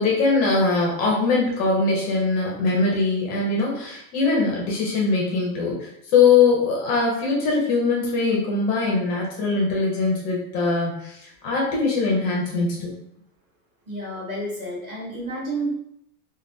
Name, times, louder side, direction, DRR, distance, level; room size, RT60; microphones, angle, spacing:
voice 1, 0.0-11.1 11.4-12.9, left 4 dB, 20° left, -3 dB, 0.4 m, -21 dB
voice 2, 13.9-15.7, right 1 dB, 25° right, -7 dB, 0.8 m, -30 dB
3.3 x 2.1 x 2.5 m, 0.74 s
supercardioid pair, 160°, 46 cm